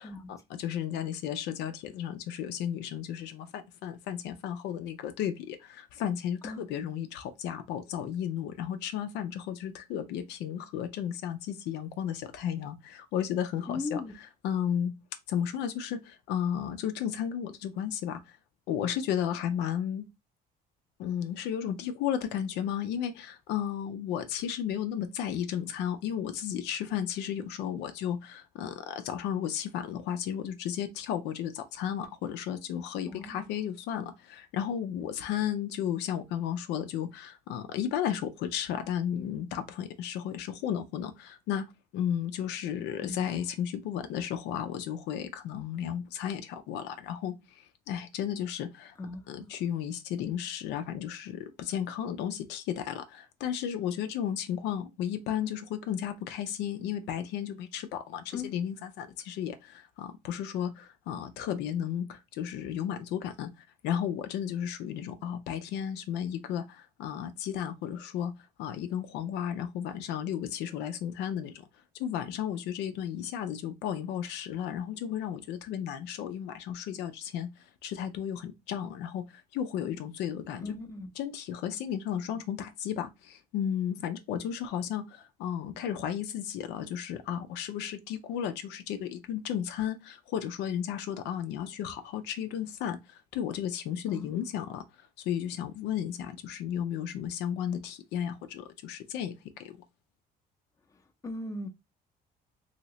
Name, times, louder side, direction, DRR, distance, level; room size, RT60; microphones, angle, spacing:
voice 1, 0.0-14.0 14.4-14.9 15.3-18.4 18.7-20.1 21.0-41.6 41.9-49.0 49.3-63.5 63.8-68.3 68.6-71.5 72.0-77.5 77.8-80.7 81.2-94.8 95.2-99.3 99.6-99.8, left 9 dB, 85° left, 0.5 m, -34 dB
voice 2, 13.7-14.1 33.1-33.5 43.0-43.3 49.0-49.5 58.3-58.5 80.6-81.1 94.1-94.4 101.2-101.7, left 3 dB, 20° left, 0.6 m, -38 dB
2.8 x 2.8 x 3.0 m
cardioid pair, 110°, 17 cm